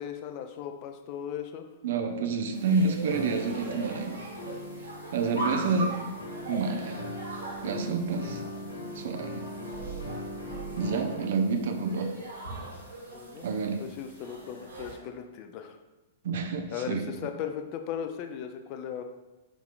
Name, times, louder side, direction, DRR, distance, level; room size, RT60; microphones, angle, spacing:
voice 1, 0.0-1.7 13.1-13.5 13.8-15.8 16.7-19.0, left 8 dB, 40° left, 6 dB, 0.4 m, -37 dB
voice 2, 1.8-4.2 5.1-6.0 6.5-7.0 7.6-8.4 8.9-9.4 10.8-12.1 13.4-13.8 16.2-17.3, right 4 dB, 55° right, 6 dB, 0.5 m, -29 dB
sound 1, 2.5-15.0, right 2 dB, 75° right, 1.3 m, -40 dB
sound 2, 3.1-11.2, left 1 dB, 75° left, 1.2 m, -40 dB
4.6 x 4.1 x 2.4 m, 1.1 s
figure-of-eight pair, 105°, 0 cm